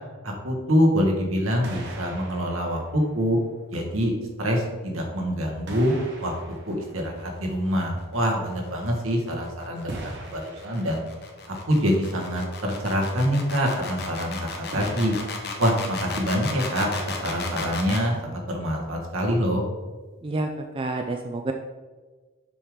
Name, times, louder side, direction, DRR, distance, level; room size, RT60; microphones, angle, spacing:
voice 1, 0.2-3.4 3.7-4.1 4.4-5.9 6.2-6.3 6.7-9.9 10.2-11.0 11.7-15.1 15.6-19.6, equal, 75° right, 0 dB, 1.5 m, -25 dB
sound 1, 1.1-1.4 1.6-3.8 4.8-4.9 5.7-7.8 9.9-11.5 14.7-16.3, right 2 dB, 55° right, 1.1 m, -40 dB
sound 2, 8.8-18.1, left 4 dB, 50° left, 1.0 m, -35 dB
voice 2, 20.7-21.5, right 2 dB, 25° right, 4 dB, 0.3 m, -28 dB
6.9 x 5.0 x 3.7 m, 1.3 s
head